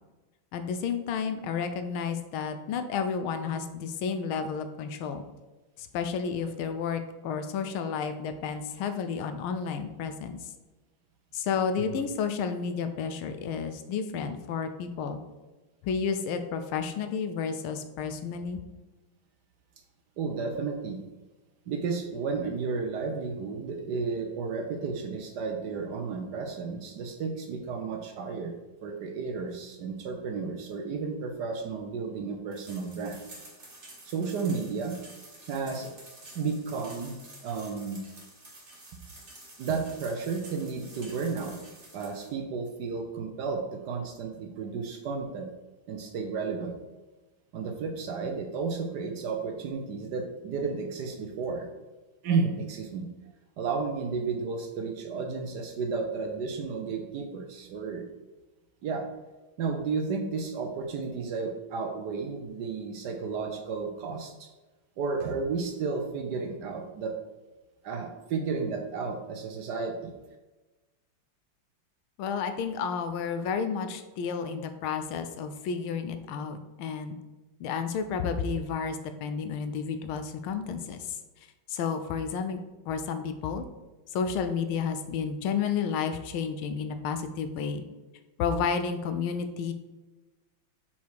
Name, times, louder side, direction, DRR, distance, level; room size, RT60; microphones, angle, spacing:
voice 1, 0.5-5.3 5.8-10.5 11.3-15.2 15.8-18.6 72.2-77.2 77.6-81.2 81.7-82.6 82.9-83.7 84.1-87.8 88.4-89.7, left 6 dB, 90° left, 8 dB, 1.5 m, -31 dB
voice 2, 20.2-21.0 21.7-28.5 28.8-33.2 34.0-35.0 35.5-35.9 36.3-38.0 38.9-39.0 39.6-41.6 41.9-45.5 45.9-46.7 47.5-51.7 52.2-53.1 53.6-58.0 58.8-59.1 59.6-64.5 65.0-67.1 67.8-70.1, right 4 dB, 65° right, 4 dB, 1.1 m, -32 dB
sound 1, 32.5-42.3, right 2 dB, 35° right, 2.0 m, -50 dB
5.8 x 4.3 x 4.7 m, 1.2 s
omnidirectional pair, 2.2 m